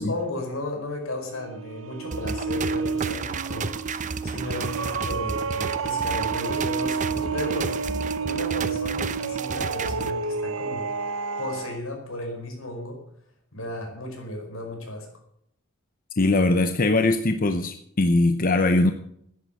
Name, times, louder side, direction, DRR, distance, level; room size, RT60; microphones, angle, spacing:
voice 1, 0.0-3.7 4.2-7.8 8.2-10.9 11.4-13.0 13.5-15.1, left 1 dB, 85° left, 2 dB, 5.1 m, -34 dB
sound 1, 1.3-11.8, right 5 dB, 80° right, 0.8 m, -30 dB
sound 2, 2.1-10.1, right 4 dB, 40° right, 0.7 m, -32 dB
voice 2, 16.2-18.9, left 2 dB, 45° left, 8 dB, 0.8 m, -21 dB
13.0 x 10.5 x 7.0 m, 0.72 s
head